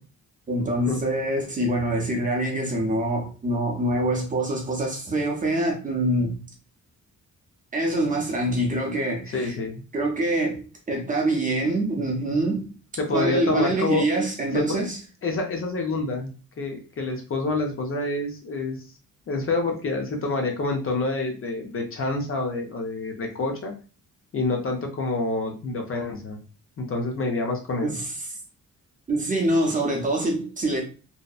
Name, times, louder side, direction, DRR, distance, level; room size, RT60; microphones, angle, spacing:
voice 1, 0.5-6.4 7.7-9.5 9.9-10.6 10.9-12.6 13.1-15.0 27.8-28.1 29.1-30.8, right 1 dB, 25° right, 0.6 m, -25 dB
voice 2, 9.3-9.8 13.0-14.0 14.5-14.8 15.2-16.3 16.6-18.8 19.3-23.7 24.3-26.4 26.8-27.9, left 2 dB, 40° left, 0.5 m, -27 dB
2.7 x 2.0 x 2.3 m
wide cardioid pair, 150°, 32 cm